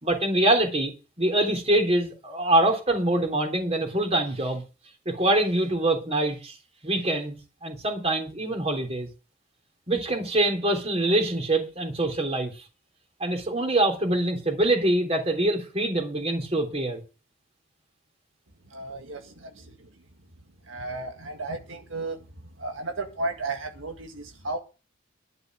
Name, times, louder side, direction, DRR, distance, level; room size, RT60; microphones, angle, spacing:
voice 1, 0.0-0.9 1.2-4.6 5.0-6.6 6.8-9.1 9.9-12.5 13.2-17.0, right 1 dB, 30° right, 3.3 m, -24 dB
voice 2, 18.7-19.6 20.7-22.2 22.6-24.6, right 2 dB, 85° right, 1.8 m, -34 dB
12.0 x 6.7 x 7.7 m
head